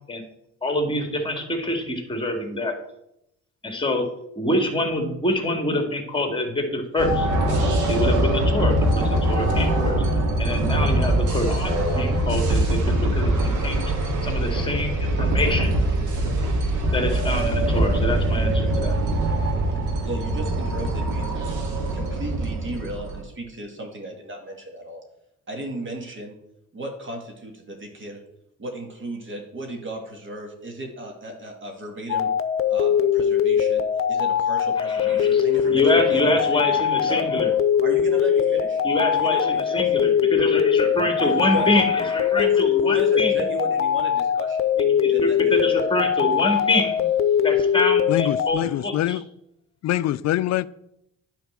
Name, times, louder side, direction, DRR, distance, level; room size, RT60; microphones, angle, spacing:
voice 1, 0.6-2.8 3.6-4.1 4.3-7.3 7.9-9.9 10.4-13.9 14.2-15.8 16.9-19.0 34.8-37.5 38.8-43.5 44.8-47.0 47.4-49.2, left 1 dB, 15° left, 2.1 m, -26 dB
sound 1, 7.0-23.2, right 1 dB, 80° right, 2.3 m, -23 dB
voice 2, 20.0-21.5 21.9-25.0 25.5-26.4 26.7-28.2 28.6-32.3 32.7-36.4 37.1-37.2 37.8-39.8 41.4-41.7 42.3-44.8 45.1-45.8, right 1 dB, 40° right, 2.3 m, -35 dB
sound 2, 32.1-48.5, left 8 dB, 45° left, 0.8 m, -21 dB
voice 3, 48.1-49.2 49.8-50.7, left 13 dB, 60° left, 0.4 m, -24 dB
9.5 x 4.3 x 7.3 m
cardioid pair, 90°, 30 cm